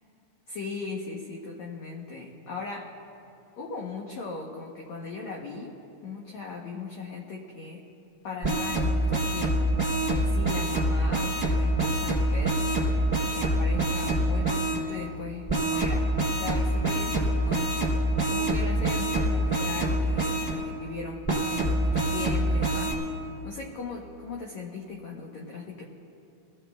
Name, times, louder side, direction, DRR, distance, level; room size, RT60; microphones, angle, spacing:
voice 1, 0.5-3.0 3.6-5.8 6.0-7.9 8.2-9.6 10.1-12.6 13.3-17.8 18.3-23.0 23.4-25.8, left 4 dB, 70° left, -1 dB, 1.7 m, -38 dB
sound 1, 8.4-14.8 15.5-20.5 21.2-22.9, right 1 dB, 5° left, 2.3 m, -26 dB
25.5 x 15.5 x 2.3 m, 2.7 s
omnidirectional pair, 4.5 m